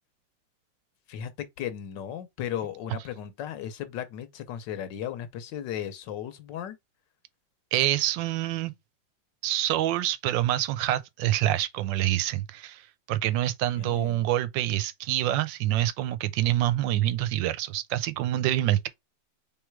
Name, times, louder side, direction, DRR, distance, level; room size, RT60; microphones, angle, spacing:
voice 1, 1.1-6.8 13.8-14.3, left 10 dB, 75° left, 1.3 m, -36 dB
voice 2, 7.7-8.7 9.4-12.8 13.1-18.9, right 13 dB, 80° right, 1.3 m, -26 dB
3.6 x 3.1 x 4.5 m
omnidirectional pair, 2.0 m